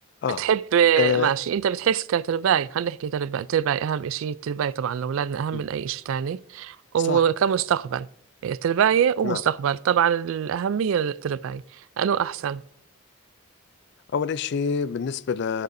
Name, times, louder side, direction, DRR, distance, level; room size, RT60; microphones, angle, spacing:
voice 1, 0.4-8.1 8.4-12.6, right 8 dB, 65° right, 0.3 m, -24 dB
voice 2, 1.0-1.3 5.5-5.6 7.1-7.2 9.2-9.4 14.1-15.6, left 6 dB, 50° left, 0.3 m, -26 dB
19.5 x 6.7 x 2.6 m
head